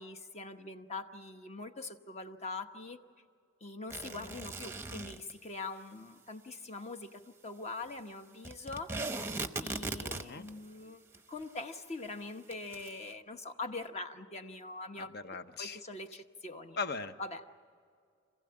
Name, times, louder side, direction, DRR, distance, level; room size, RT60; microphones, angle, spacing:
voice 1, 0.0-3.0 3.6-8.9 9.6-11.0 11.3-15.1 15.6-16.8 17.2-17.6, left 3 dB, 35° left, 7 dB, 1.0 m, -43 dB
sound 1, 3.9-5.3 8.4-10.5 11.1-11.2 11.4-11.5 12.5-12.9, right 3 dB, 10° right, 0.8 m, -38 dB
voice 2, 10.1-10.5 15.0-15.8 16.8-17.2, left 4 dB, 55° left, 10 dB, 0.9 m, -39 dB
26.0 x 16.0 x 8.7 m, 2.2 s
head